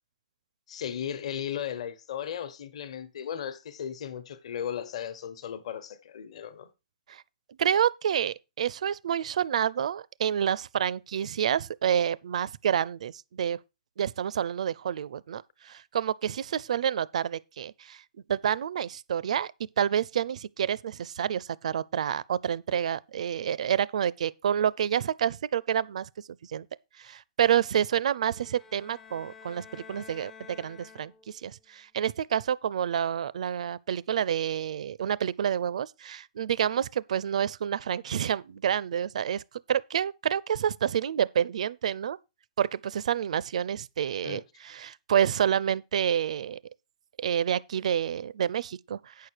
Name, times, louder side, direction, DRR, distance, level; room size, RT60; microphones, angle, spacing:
voice 1, 0.7-6.7 44.2-44.4, left 9 dB, 50° left, 1.2 m, -36 dB
voice 2, 7.6-13.6 14.0-18.0 18.3-26.1 26.5-26.7 27.0-39.4 39.7-42.2 42.6-46.6 47.2-49.3, right 9 dB, 60° right, 0.5 m, -28 dB
sound 1, 28.3-31.5, left 6 dB, 10° left, 0.4 m, -50 dB
9.3 x 6.7 x 4.6 m
hypercardioid pair, 170°, 4 cm